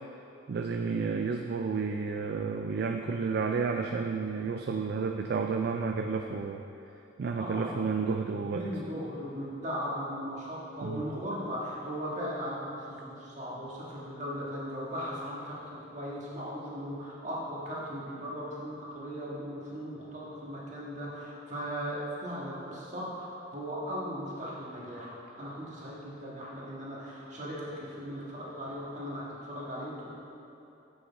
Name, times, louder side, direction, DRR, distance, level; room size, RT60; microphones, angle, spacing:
voice 1, 0.5-6.6 7.2-8.6 10.8-11.0, right 5 dB, 55° right, 3 dB, 0.3 m, -31 dB
voice 2, 7.4-7.8 8.5-30.1, equal, 40° right, -6 dB, 1.6 m, -38 dB
7.9 x 6.4 x 4.0 m, 2.8 s
head